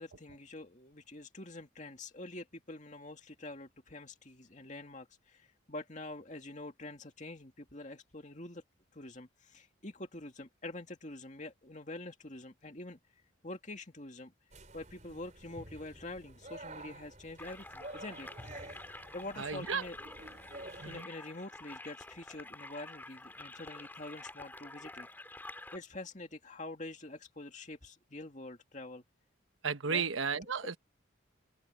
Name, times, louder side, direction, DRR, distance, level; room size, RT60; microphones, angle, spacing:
voice 1, 0.0-8.6 8.9-13.0 13.4-14.3 14.7-18.7 19.1-20.0 20.8-25.1 25.7-29.0 29.9-30.1, left 2 dB, 35° left, 2.4 m, -46 dB
sound 1, 14.5-21.0, right 2 dB, 35° right, 4.8 m, -50 dB
sound 2, 17.4-25.8, left 2 dB, 10° left, 3.3 m, -49 dB
voice 2, 19.4-19.8 20.8-21.1 29.6-30.8, right 6 dB, 80° right, 1.2 m, -33 dB
open air
head